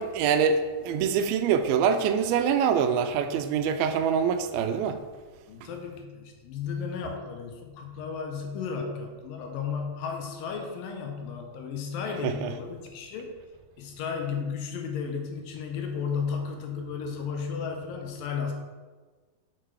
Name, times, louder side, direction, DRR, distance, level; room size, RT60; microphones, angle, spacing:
voice 1, 0.0-5.0 12.2-12.5, right 7 dB, 85° right, 9 dB, 2.4 m, -25 dB
voice 2, 5.5-13.3 13.8-18.5, left 6 dB, 75° left, 3 dB, 2.3 m, -34 dB
6.7 x 5.9 x 4.6 m, 1.3 s
omnidirectional pair, 4.4 m